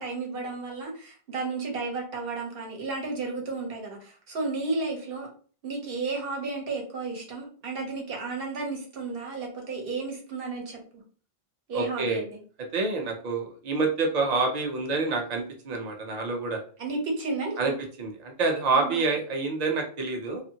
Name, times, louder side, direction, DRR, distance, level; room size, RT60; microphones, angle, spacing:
voice 1, 0.0-5.3 5.6-11.0 11.7-12.4 16.8-17.8 18.7-19.0, right 3 dB, 60° right, 1 dB, 1.0 m, -33 dB
voice 2, 11.7-12.2 12.7-16.6 17.6-17.7 18.0-20.4, right 3 dB, 45° right, 2 dB, 0.7 m, -27 dB
2.6 x 2.5 x 2.7 m, 0.42 s
omnidirectional pair, 1.1 m